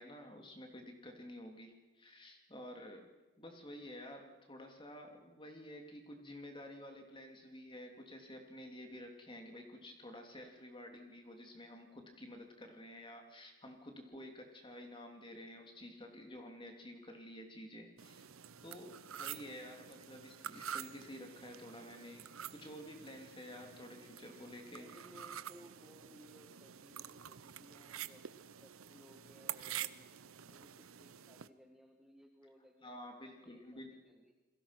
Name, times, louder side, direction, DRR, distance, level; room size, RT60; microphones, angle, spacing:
voice 1, 0.0-3.1 3.4-18.3 18.6-24.9 32.8-33.9, left 1 dB, 25° left, 3 dB, 3.2 m, -51 dB
sound 1, 18.0-31.5, right 10 dB, 80° right, 0.8 m, -48 dB
voice 2, 24.7-30.1 30.5-34.3, equal, ahead, 2 dB, 1.5 m, -61 dB
29.0 x 22.0 x 6.1 m, 1.2 s
head